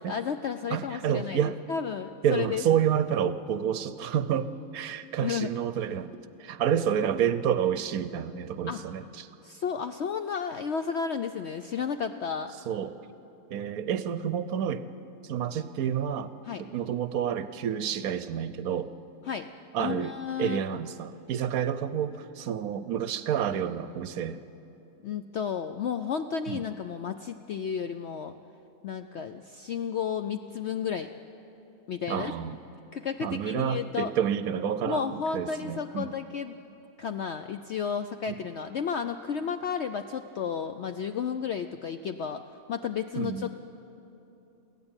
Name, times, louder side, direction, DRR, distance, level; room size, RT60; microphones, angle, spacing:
voice 1, 0.0-2.6 5.2-5.5 8.7-8.9 9.4-12.5 16.5-16.6 19.3-19.5 19.8-20.6 25.0-28.3 28.8-31.1 31.9-32.3 32.9-34.1 34.8-36.6 37.0-42.4 42.7-43.5, left 7 dB, 65° left, 8 dB, 0.6 m, -32 dB
voice 2, 0.7-1.6 2.2-9.3 12.7-12.9 13.5-14.9 15.2-16.3 16.6-18.9 19.7-20.1 20.4-24.4 26.5-26.6 32.1-32.6 33.2-36.1 38.3-38.4 43.2-43.5, right 9 dB, 70° right, 14 dB, 1.1 m, -29 dB
23.0 x 15.5 x 8.9 m, 2.9 s
omnidirectional pair, 1.7 m